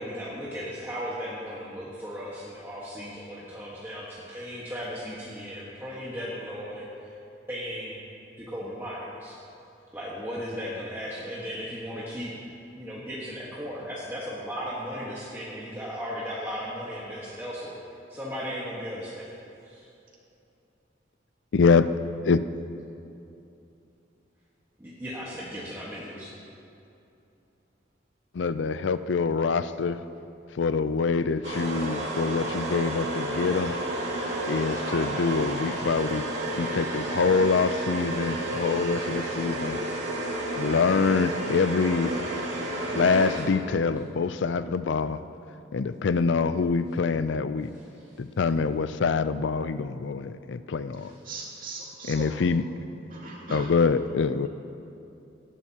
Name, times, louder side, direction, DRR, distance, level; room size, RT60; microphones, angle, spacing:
voice 1, 0.0-7.1 7.5-8.0 8.4-9.4 9.9-12.4 12.8-17.8 18.1-19.3 19.6-19.8 24.8-26.3 33.6-33.7 47.7-48.2, equal, 15° right, -7 dB, 1.4 m, -36 dB
voice 2, 21.5-21.8 22.3-22.4 28.3-30.0 30.5-33.7 34.5-36.3 36.6-39.8 40.6-42.1 42.9-45.2 45.7-47.7 48.2-51.1 52.1-52.6 53.5-54.5, left 5 dB, 75° left, 13 dB, 0.4 m, -25 dB
sound 1, 31.4-43.8, right 1 dB, 75° right, 2.3 m, -31 dB
voice 3, 51.2-52.4 53.1-53.7, right 3 dB, 45° right, -4 dB, 2.5 m, -39 dB
18.0 x 13.5 x 2.9 m, 2.7 s
head